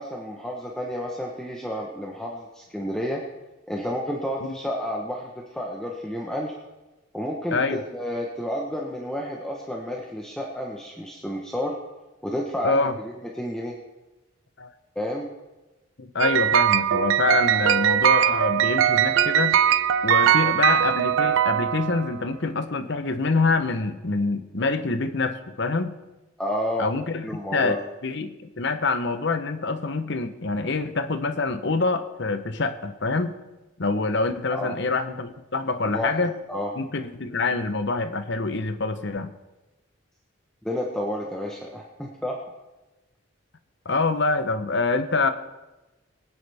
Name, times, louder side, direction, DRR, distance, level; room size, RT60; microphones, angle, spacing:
voice 1, 0.0-3.2 3.7-6.5 7.1-11.8 12.2-13.7 14.9-15.3 17.5-17.7 26.4-26.9 27.2-27.8 34.5-34.8 35.9-36.2 36.5-36.7 40.6-42.4, equal, 5° left, -2 dB, 1.0 m, -30 dB
voice 2, 7.5-7.8 12.6-12.9 14.6-14.7 16.0-19.6 20.0-26.0 26.8-33.4 33.8-36.4 36.8-39.3 43.8-45.3, left 3 dB, 60° left, 9 dB, 0.9 m, -26 dB
sound 1, 16.2-22.2, right 10 dB, 70° right, 0.4 m, -21 dB
22.5 x 9.7 x 3.5 m, 1.1 s
head